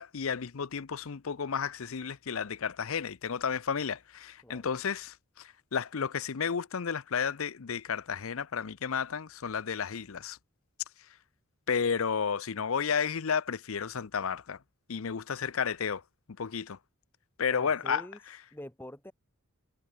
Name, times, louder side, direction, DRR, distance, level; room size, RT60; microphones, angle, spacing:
voice 1, 0.0-10.4 11.7-14.6 14.9-16.0 16.4-16.8 17.4-18.1, left 6 dB, 70° left, 0.6 m, -32 dB
voice 2, 17.5-18.2 18.5-19.1, left 1 dB, 10° left, 1.5 m, -45 dB
head